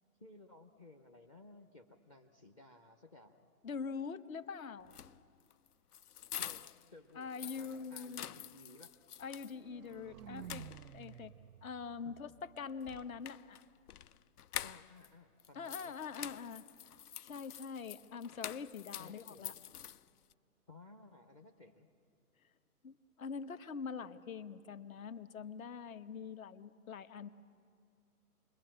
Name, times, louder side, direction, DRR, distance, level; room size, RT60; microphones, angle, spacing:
voice 1, 0.2-3.5 6.4-8.9 12.0-12.2 14.6-16.1 19.0-19.6 20.7-21.9, left 2 dB, 20° left, 8 dB, 0.6 m, -57 dB
voice 2, 3.6-4.9 7.1-8.3 9.2-10.6 10.9-11.3 11.6-13.6 15.5-16.7 17.2-19.5 22.8-27.3, left 5 dB, 60° left, 11 dB, 1.2 m, -44 dB
sound 1, 4.8-6.9 7.2-9.5 9.9-10.0 10.4-11.2 12.8-15.1 15.4-20.3, left 10 dB, 80° left, 0.6 m, -47 dB
sound 2, 9.2-13.3, right 11 dB, 80° right, 0.5 m, -53 dB
29.0 x 21.0 x 7.6 m, 2.3 s
hypercardioid pair, 150°, 46 cm